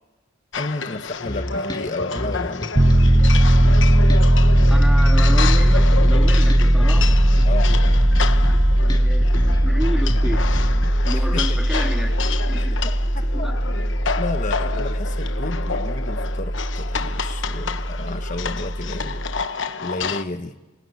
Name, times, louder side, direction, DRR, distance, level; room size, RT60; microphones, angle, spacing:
sound 1, 0.5-20.2, left 5 dB, 75° left, 1.1 m, -30 dB
voice 1, 0.6-2.8 7.4-7.7 11.1-11.6 12.6-13.5 14.2-19.2 19.8-20.6, left 2 dB, 40° left, 8 dB, 1.1 m, -32 dB
sound 2, 1.3-10.9, equal, 25° left, 2.2 m, -30 dB
Piano, 2.8-19.4, right 1 dB, 25° right, 0.8 m, -18 dB
voice 2, 4.7-7.5 8.4-10.5 11.0-12.8 13.2-13.7, equal, ahead, 4 dB, 1.8 m, -31 dB
29.0 x 21.5 x 8.4 m, 1.2 s
head